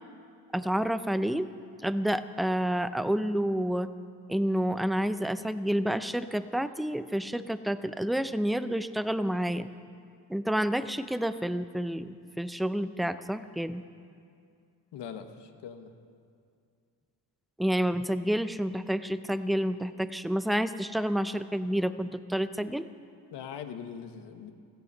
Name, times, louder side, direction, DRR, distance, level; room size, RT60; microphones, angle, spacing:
voice 1, 0.5-1.5 1.8-3.9 4.3-9.7 10.3-13.8 17.6-22.9, equal, ahead, 12 dB, 0.4 m, -29 dB
voice 2, 14.9-15.9 23.3-24.5, left 7 dB, 90° left, 7 dB, 1.2 m, -41 dB
15.5 x 14.0 x 5.5 m, 2.4 s
cardioid pair, 90°, 40 cm